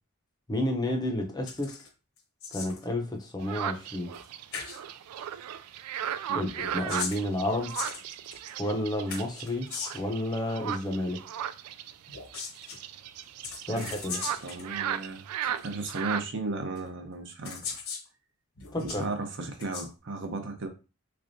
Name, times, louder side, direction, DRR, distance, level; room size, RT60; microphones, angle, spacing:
voice 1, 0.5-1.8 2.5-4.1 6.3-7.7 8.6-9.7 9.9-11.2 13.7-14.2 18.7-19.0, left 1 dB, 20° left, 2 dB, 0.6 m, -30 dB
sound 1, 1.5-1.9 2.2-2.9 4.1-4.3 4.5-4.8 6.6-8.5 9.1-10.1 12.1-12.8 13.4-14.7 15.6-15.7 16.8-16.9 17.4-18.1 18.6-19.0 19.5-19.9, left 5 dB, 65° left, 0.9 m, -38 dB
sound 2, 3.4-16.3, right 10 dB, 85° right, 0.3 m, -36 dB
voice 2, 14.3-17.6 18.8-20.7, right 3 dB, 55° right, 5 dB, 0.7 m, -35 dB
3.5 x 3.3 x 2.6 m, 0.31 s
head